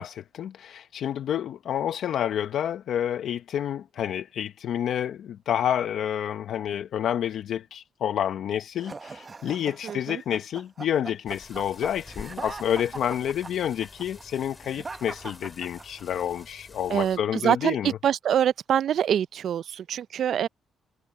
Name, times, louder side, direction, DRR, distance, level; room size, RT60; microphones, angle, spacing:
voice 1, 0.0-18.0, left 10 dB, 70° left, 0.8 m, -29 dB
sound 1, 8.8-16.2, right 4 dB, 30° right, 1.0 m, -41 dB
voice 2, 9.8-10.2 16.9-20.5, right 9 dB, 65° right, 0.4 m, -25 dB
sound 2, 11.3-17.2, left 3 dB, 25° left, 2.8 m, -48 dB
cardioid pair, 90°, 0 cm